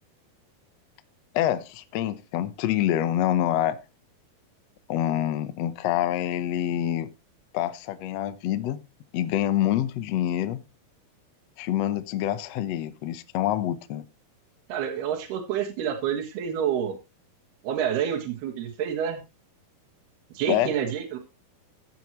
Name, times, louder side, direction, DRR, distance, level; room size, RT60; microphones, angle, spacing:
voice 1, 1.3-3.8 4.9-7.1 7.5-8.8 9.1-10.6 11.6-14.0 20.5-20.7, left 12 dB, 75° left, 1.5 m, -26 dB
voice 2, 14.7-17.0 17.6-19.2 20.4-21.2, right 9 dB, 90° right, 3.7 m, -28 dB
15.5 x 9.0 x 3.1 m
omnidirectional pair, 4.4 m